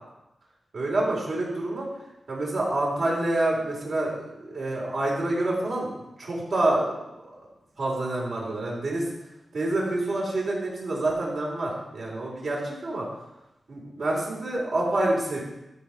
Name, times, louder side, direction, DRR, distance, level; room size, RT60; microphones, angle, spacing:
voice 1, 0.7-1.9 2.3-5.9 6.2-7.0 7.8-9.0 9.5-13.1 13.7-15.4, right 2 dB, 70° right, -4 dB, 4.1 m, -27 dB
13.0 x 5.1 x 5.7 m, 0.94 s
wide cardioid pair, 80°, 0 cm